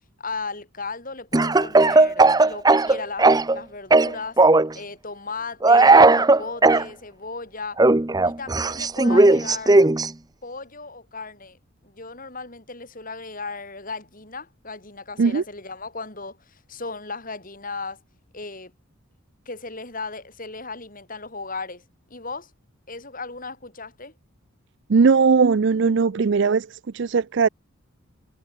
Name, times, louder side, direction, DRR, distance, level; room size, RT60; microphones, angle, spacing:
voice 1, 0.2-4.4 4.7-7.8 8.2-9.9 10.4-11.6 11.8-18.0 18.3-18.7 19.5-21.8 22.1-22.5 22.9-24.1, left 3 dB, 40° left, 5.8 m, -36 dB
Speech / Cough, 1.3-3.6 3.9-4.7 5.6-6.8 7.8-10.1, right 3 dB, 20° right, 0.6 m, -16 dB
voice 2, 24.9-27.5, right 5 dB, 55° right, 0.5 m, -19 dB
head